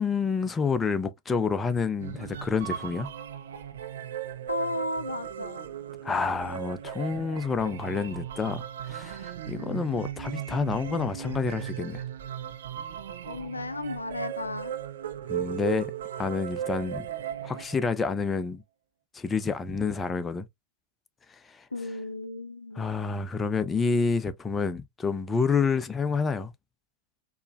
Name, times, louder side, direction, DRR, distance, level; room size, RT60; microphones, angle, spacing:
voice 1, 0.0-3.1 6.0-12.0 15.3-15.9 16.2-17.0 17.4-18.6 19.1-20.5 21.3-21.7 22.8-26.5, left 5 dB, 15° left, 0.6 m, -28 dB
sound 1, 2.0-18.0, right 10 dB, 60° right, 0.6 m, -37 dB
voice 2, 4.5-5.7 13.3-14.7 21.7-22.9, left 2 dB, 80° left, 0.5 m, -34 dB
4.5 x 3.2 x 2.2 m
figure-of-eight pair, 90°, 0 cm